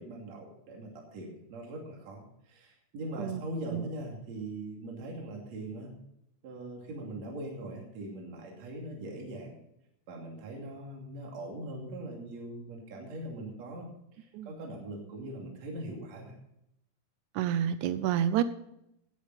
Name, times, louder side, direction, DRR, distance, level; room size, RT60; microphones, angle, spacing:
voice 1, 0.0-2.2 2.5-5.9 6.4-9.6 10.1-13.9 14.2-16.3, right 1 dB, 50° right, 0 dB, 3.6 m, -41 dB
voice 2, 17.4-18.4, right 10 dB, 85° right, 13 dB, 1.7 m, -29 dB
15.5 x 11.0 x 4.1 m, 0.80 s
omnidirectional pair, 4.2 m